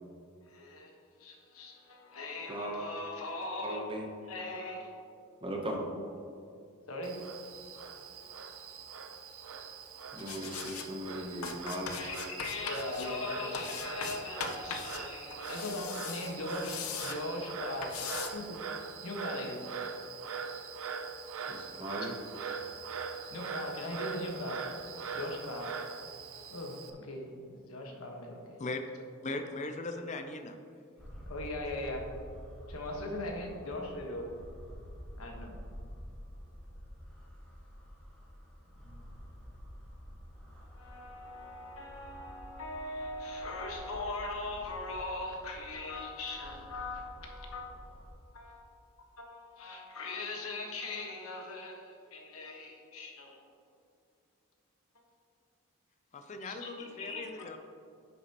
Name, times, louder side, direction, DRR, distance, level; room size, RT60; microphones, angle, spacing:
voice 1, 0.4-3.8 4.2-5.0 5.5-5.6 5.9-6.1 6.9-7.2 11.9-17.9 18.3-18.6 19.0-19.7 23.3-24.7 25.1-25.8 26.5-28.6 31.3-32.1 32.7-34.3 35.2-35.6 38.7-39.1 40.6-53.4 54.9-55.0 56.4-57.4, left 2 dB, 70° left, 1 dB, 1.3 m, -40 dB
voice 2, 3.6-4.0 5.4-5.8 10.1-12.0 21.5-22.1, equal, 25° right, 1 dB, 0.8 m, -38 dB
Frog, 7.0-26.9, right 5 dB, 65° right, 0.6 m, -42 dB
sound 1, 10.2-10.9 11.4-13.1 13.5-15.0 15.3-17.2 17.8-18.3, left 5 dB, 85° left, 0.7 m, -40 dB
voice 3, 29.2-30.6 56.1-57.6, left 2 dB, 35° left, 7 dB, 0.4 m, -39 dB
sound 2, 31.0-48.1, equal, 5° left, 1.6 m, -49 dB
10.0 x 7.0 x 2.9 m, 2.5 s
head